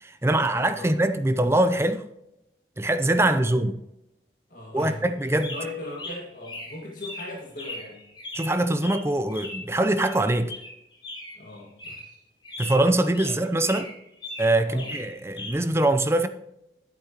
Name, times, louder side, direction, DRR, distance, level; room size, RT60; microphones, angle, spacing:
voice 1, 0.0-2.0 2.8-3.8 4.7-5.5 8.3-10.5 12.6-13.9 14.4-16.3, right 1 dB, 15° right, 0.5 m, -23 dB
voice 2, 0.5-0.9 3.1-3.5 4.5-5.2 5.5-8.0 11.4-12.0 13.2-13.4 14.7-14.9, left 2 dB, 50° left, 2.0 m, -39 dB
sound 1, 5.2-9.7 10.0-12.2 12.4-13.4 13.6-15.5, left 1 dB, 30° left, 3.3 m, -39 dB
11.0 x 8.6 x 2.9 m
head